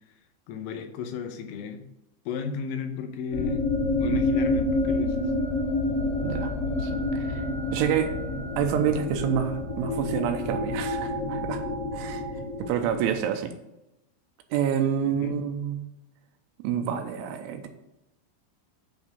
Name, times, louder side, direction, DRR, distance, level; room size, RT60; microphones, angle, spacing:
voice 1, 0.5-1.8 2.3-3.6 4.0-5.3 15.0-15.3, left 5 dB, 90° left, 5 dB, 3.4 m, -34 dB
sound 1, 3.3-13.1, left 2 dB, 45° left, 2.3 m, -28 dB
voice 2, 6.2-6.5 6.8-7.4 7.7-8.1 8.6-11.6 11.9-13.5 14.5-15.8 16.6-17.7, right 8 dB, 85° right, 5 dB, 3.1 m, -28 dB
8.7 x 3.6 x 6.7 m, 0.91 s
omnidirectional pair, 5.5 m